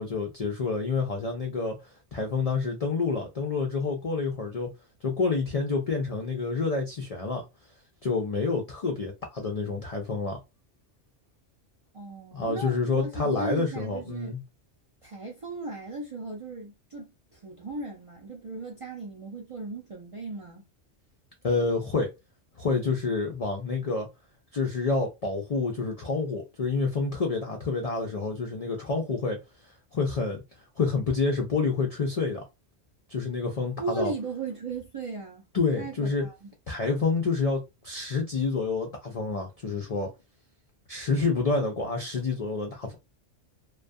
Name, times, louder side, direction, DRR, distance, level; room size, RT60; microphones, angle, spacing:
voice 1, 0.0-4.7 5.0-7.4 8.0-10.4 12.3-14.4 21.4-22.1 22.6-24.1 24.5-29.4 29.9-30.4 30.8-32.4 33.1-34.1 35.5-36.3 36.7-40.1 40.9-42.9, left 4 dB, 55° left, 0.4 m, -28 dB
voice 2, 11.9-14.3 15.0-20.6 33.8-35.5 35.7-36.5, right 3 dB, 45° right, 0.4 m, -37 dB
2.3 x 2.3 x 2.5 m
omnidirectional pair, 1.2 m